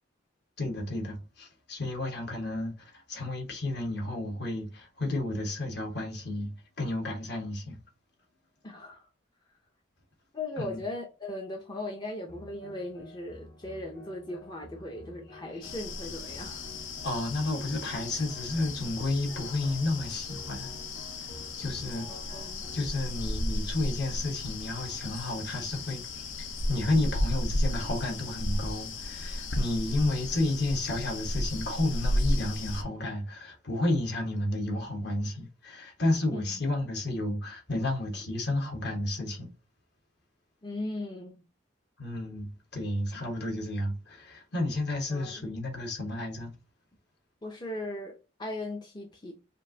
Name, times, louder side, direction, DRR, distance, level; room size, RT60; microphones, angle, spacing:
voice 1, 0.6-7.8 10.6-10.8 15.5-15.7 17.0-20.7 21.6-22.1 22.7-26.2 26.7-39.5 42.0-46.5, left 2 dB, 55° left, 1.2 m, -31 dB
voice 2, 8.6-9.1 10.3-16.7 22.1-22.7 36.3-36.6 40.6-41.5 45.1-45.5 47.4-49.3, left 1 dB, 20° left, 0.5 m, -38 dB
sound 1, 12.3-24.8, left 1 dB, 35° left, 1.2 m, -50 dB
sound 2, 15.6-32.8, left 1 dB, 75° left, 0.7 m, -34 dB
5.2 x 2.5 x 2.7 m
head